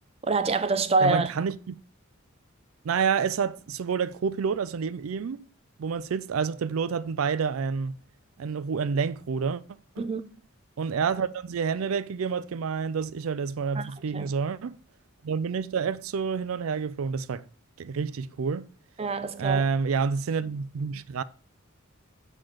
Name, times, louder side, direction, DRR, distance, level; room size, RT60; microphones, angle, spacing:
voice 1, 0.2-1.3 10.0-10.2 13.8-13.9 14.1-14.3 19.0-19.6, right 3 dB, 30° right, 0.6 m, -25 dB
voice 2, 1.0-1.8 2.8-5.4 5.8-8.0 8.4-9.6 10.0-10.1 10.8-14.8 15.2-17.4 17.8-18.7 19.4-21.2, right 6 dB, 90° right, 0.4 m, -28 dB
6.7 x 3.9 x 6.2 m
head